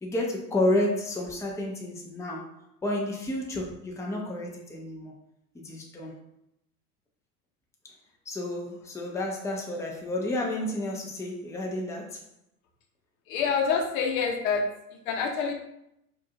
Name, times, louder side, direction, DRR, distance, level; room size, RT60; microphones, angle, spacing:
voice 1, 0.0-2.5 2.8-5.2 5.5-6.1 8.3-12.2, left 1 dB, 5° left, -1 dB, 0.7 m, -30 dB
voice 2, 13.3-14.6 14.9-15.5, left 5 dB, 65° left, 3 dB, 0.9 m, -27 dB
4.8 x 2.5 x 2.8 m, 0.81 s
hypercardioid pair, 95°, 45 cm